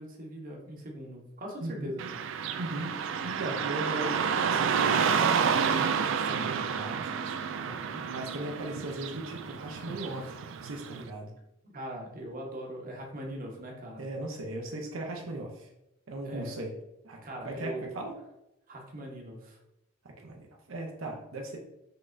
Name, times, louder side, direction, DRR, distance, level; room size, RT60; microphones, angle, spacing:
voice 1, 0.0-2.1 7.6-8.0 11.6-14.1 16.2-16.6 17.2-17.9 18.7-19.6, equal, 45° right, 0 dB, 0.9 m, -41 dB
voice 2, 1.6-1.9 2.6-7.3 8.0-11.3 14.0-15.7 16.1-16.7 17.0-17.2 17.4-18.1 20.2-21.6, right 2 dB, 80° right, 0 dB, 0.8 m, -38 dB
Car passing by / Traffic noise roadway noise, 2.0-11.0, right 6 dB, 65° right, 0.3 m, -30 dB
5.7 x 3.3 x 2.6 m, 0.86 s
head